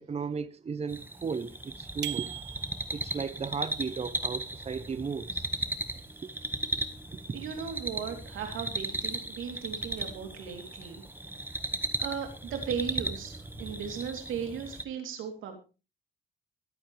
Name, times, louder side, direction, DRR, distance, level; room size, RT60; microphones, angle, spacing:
voice 1, 0.0-2.3 2.9-5.5 6.2-6.3, right 5 dB, 30° right, 0.8 m, -35 dB
sound 1, 0.9-14.8, right 1 dB, 10° right, 1.6 m, -36 dB
sound 2, 2.0-3.1, right 12 dB, 60° right, 0.8 m, -38 dB
voice 2, 7.3-11.0 12.0-15.6, right 7 dB, 80° right, 3.3 m, -37 dB
23.5 x 8.6 x 3.3 m
cardioid pair, 90°, 20 cm